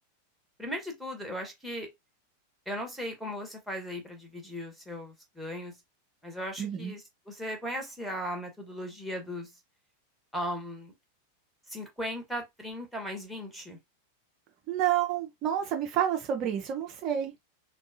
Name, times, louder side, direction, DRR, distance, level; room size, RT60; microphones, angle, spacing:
voice 1, 0.6-1.9 2.7-5.7 6.2-9.5 10.3-10.9 11.7-13.8, equal, ahead, 1.2 m, -37 dB
voice 2, 6.6-6.9 14.7-17.3, right 10 dB, 35° right, 0.5 m, -29 dB
3.6 x 2.3 x 2.6 m
figure-of-eight pair, 90°, 0 cm